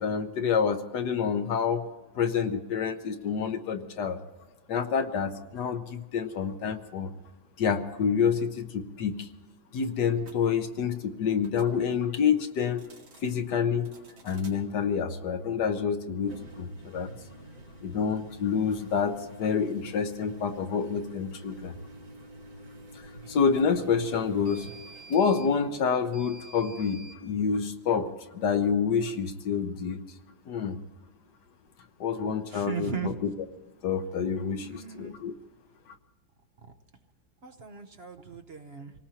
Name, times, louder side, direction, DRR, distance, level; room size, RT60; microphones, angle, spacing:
voice 1, 0.0-1.8 2.2-4.2 4.7-7.1 7.6-9.3 9.7-12.9 13.2-14.0 14.2-17.1 17.8-21.7 23.3-24.7 25.1-28.1 28.3-30.0 30.5-30.8 32.0-33.1 33.8-35.3, left 6 dB, 65° left, 7 dB, 1.5 m, -28 dB
sound 1, 10.2-10.4 11.4-11.8 12.7-13.4 13.8-14.6 16.2-27.2, right 1 dB, 90° right, 3.0 m, -47 dB
voice 2, 32.5-33.2 34.6-35.1 37.4-38.9, right 6 dB, 50° right, 5 dB, 0.8 m, -37 dB
27.0 x 18.5 x 2.9 m, 1.2 s
omnidirectional pair, 2.0 m